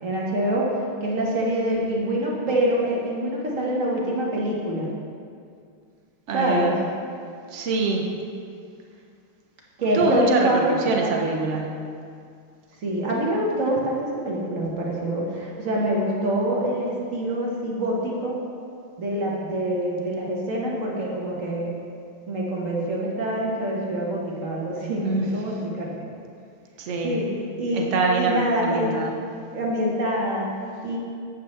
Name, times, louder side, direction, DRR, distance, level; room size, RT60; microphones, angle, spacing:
voice 1, 0.0-0.7 1.0-4.9 6.3-6.7 9.8-11.1 12.8-18.4 19.0-21.8 22.3-25.9 27.0-27.3 27.6-27.9 28.2-29.0 29.5-30.5 30.8-31.0, right 1 dB, 45° right, -3 dB, 1.3 m, -25 dB
voice 2, 6.3-6.7 7.5-8.1 9.9-11.8 25.0-25.3 26.8-27.2 27.7-29.1, right 3 dB, 70° right, 1 dB, 0.6 m, -24 dB
8.7 x 7.7 x 3.2 m, 2.3 s
omnidirectional pair, 2.3 m